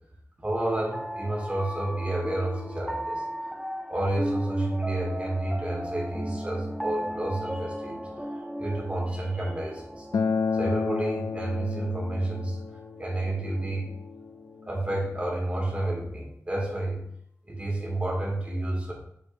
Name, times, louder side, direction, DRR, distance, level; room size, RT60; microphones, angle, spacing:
voice 1, 0.4-3.2 3.9-8.1 8.6-10.1 10.5-12.6 13.0-13.9 14.7-17.0 17.5-18.9, right 1 dB, 20° right, -3 dB, 2.0 m, -30 dB
sound 1, 0.6-14.9, equal, 5° right, 0.5 m, -36 dB
Acoustic guitar, 10.1-15.3, left 5 dB, 80° left, 0.3 m, -32 dB
6.3 x 6.0 x 2.5 m, 0.72 s
wide cardioid pair, 90°, 6 cm